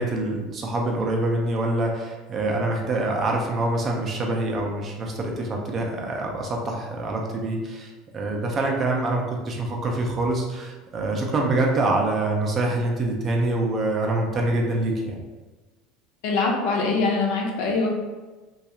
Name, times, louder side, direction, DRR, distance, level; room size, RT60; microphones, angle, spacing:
voice 1, 0.0-15.2, right 2 dB, 25° right, 0 dB, 0.4 m, -25 dB
voice 2, 16.2-17.9, left 3 dB, 65° left, 0 dB, 0.6 m, -23 dB
2.4 x 2.3 x 2.8 m, 1.3 s
cardioid pair, 160°, 0 cm